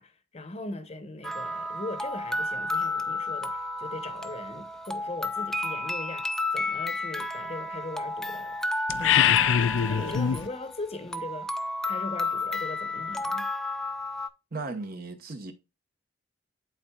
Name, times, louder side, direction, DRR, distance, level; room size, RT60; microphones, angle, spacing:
voice 1, 0.0-8.6 9.0-9.5 9.9-11.5 11.9-13.5, left 2 dB, 30° left, 0.8 m, -40 dB
sound 1, 1.2-14.3, left 2 dB, ahead, 0.4 m, -32 dB
sound 2, 8.9-10.5, left 9 dB, 75° left, 0.4 m, -23 dB
voice 2, 14.5-15.5, right 3 dB, 50° right, 0.9 m, -36 dB
11.5 x 4.0 x 2.3 m
head